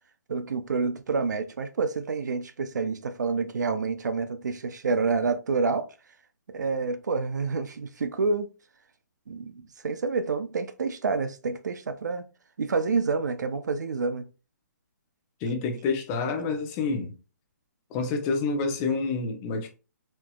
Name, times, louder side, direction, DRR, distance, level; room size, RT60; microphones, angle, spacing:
voice 1, 0.3-5.9 6.5-8.5 9.3-12.2 12.6-14.2, right 4 dB, 75° right, 0.6 m, -28 dB
voice 2, 15.4-17.1 17.9-19.7, left 4 dB, 25° left, 0.8 m, -28 dB
4.4 x 2.9 x 2.3 m
hypercardioid pair, 150°, 9 cm